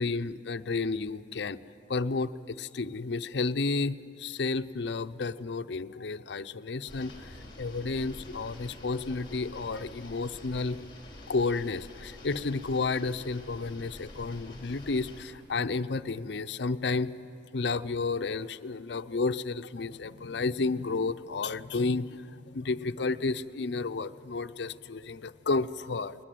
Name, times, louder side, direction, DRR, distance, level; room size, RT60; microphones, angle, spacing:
voice 1, 0.0-1.6 1.9-10.8 11.3-17.1 17.5-26.2, left 3 dB, 60° left, 10 dB, 0.6 m, -31 dB
sound 1, 6.9-15.2, left 1 dB, 25° left, 4.0 m, -47 dB
21.0 x 20.0 x 9.2 m, 2.7 s
head